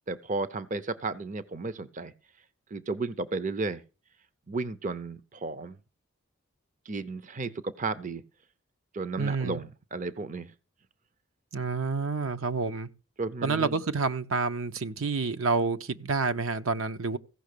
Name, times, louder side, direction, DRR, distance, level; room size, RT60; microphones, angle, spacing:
voice 1, 0.1-2.1 2.7-3.8 4.5-5.8 6.9-8.2 8.9-10.5 13.2-13.8, right 3 dB, 35° right, 0.6 m, -33 dB
voice 2, 9.2-9.6 11.5-12.9 13.4-17.2, right 4 dB, 70° right, 0.8 m, -28 dB
15.5 x 6.0 x 6.6 m
head